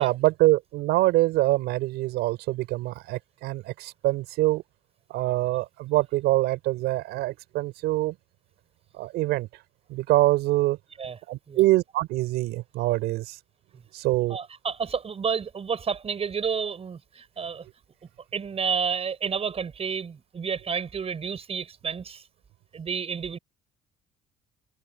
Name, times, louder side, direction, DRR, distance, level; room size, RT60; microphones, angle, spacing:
voice 1, 0.0-4.6 5.1-8.1 8.9-9.5 9.9-10.8 11.3-13.4 13.9-14.4, right 18 dB, 90° right, 5.1 m, -24 dB
voice 2, 14.3-17.7 18.3-22.2 22.7-23.4, right 6 dB, 35° right, 5.7 m, -30 dB
cardioid pair, 110°, 17 cm